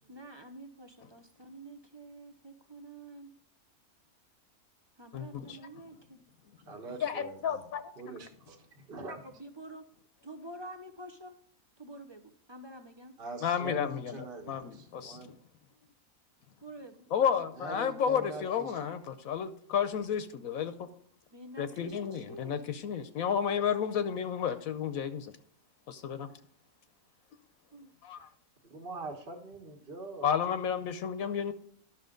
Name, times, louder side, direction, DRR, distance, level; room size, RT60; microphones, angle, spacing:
voice 1, 0.1-3.3 5.0-6.2 9.2-9.9 10.2-11.4 11.8-13.2 16.6-17.1 17.7-17.9 21.3-22.6 27.7-27.9, right 1 dB, 25° right, 0.7 m, -48 dB
voice 2, 5.1-5.6 7.0-7.8 13.4-15.3 17.1-20.9 21.6-25.4 25.9-26.3 28.0-28.3 30.2-31.5, left 8 dB, 80° left, 1.2 m, -32 dB
voice 3, 6.6-7.7 8.0-9.2 13.2-15.3 17.5-19.0 28.6-30.3, right 2 dB, 40° right, 1.5 m, -44 dB
12.0 x 6.2 x 3.8 m
omnidirectional pair, 1.5 m